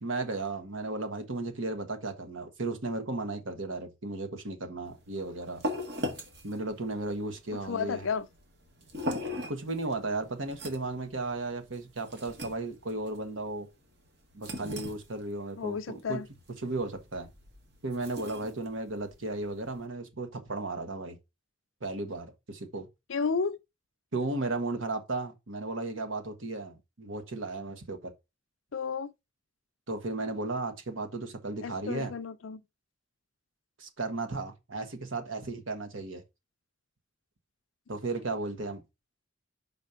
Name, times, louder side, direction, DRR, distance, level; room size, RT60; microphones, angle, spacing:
voice 1, 0.0-5.6 6.4-8.0 9.3-13.7 14.3-16.2 16.6-17.3 17.8-21.2 21.8-22.9 24.1-28.1 29.9-32.1 33.8-36.2 37.9-38.8, right 2 dB, 75° right, 1.4 m, -35 dB
sound 1, 4.9-19.9, left 1 dB, 55° right, 1.6 m, -41 dB
voice 2, 7.5-8.3 15.6-16.3 23.1-23.6 28.7-29.1 31.6-32.6, left 5 dB, 80° left, 0.5 m, -32 dB
5.4 x 4.2 x 5.6 m
head